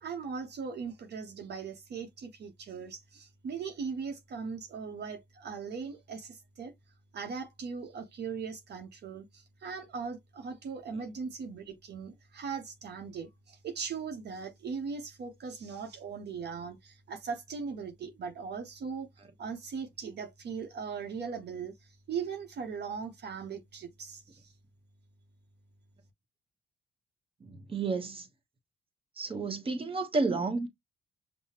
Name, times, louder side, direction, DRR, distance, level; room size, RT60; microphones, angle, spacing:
voice 1, 0.0-6.7 7.1-19.1 19.4-24.5, right 5 dB, 55° right, 0.8 m, -39 dB
voice 2, 27.4-28.3 29.2-30.7, right 3 dB, 30° right, 0.9 m, -31 dB
5.6 x 2.1 x 2.8 m
cardioid pair, 90°, 20 cm